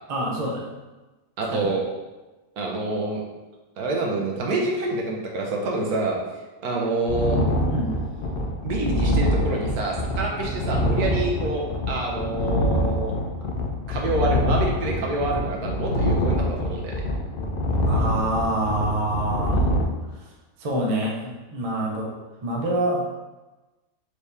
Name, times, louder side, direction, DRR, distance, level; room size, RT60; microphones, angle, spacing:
voice 1, 0.1-0.7 1.5-1.7 7.7-7.9 17.9-19.7 20.6-22.1 22.4-23.2, right 1 dB, 45° right, -1 dB, 0.4 m, -26 dB
voice 2, 1.4-1.8 2.6-3.2 3.8-6.2 6.6-7.4 8.6-13.1 13.9-17.0, right 2 dB, 80° right, -1 dB, 1.3 m, -27 dB
sound 1, 7.1-19.8, left 1 dB, 70° left, 0.5 m, -25 dB
4.6 x 2.8 x 3.3 m, 1.2 s
omnidirectional pair, 1.6 m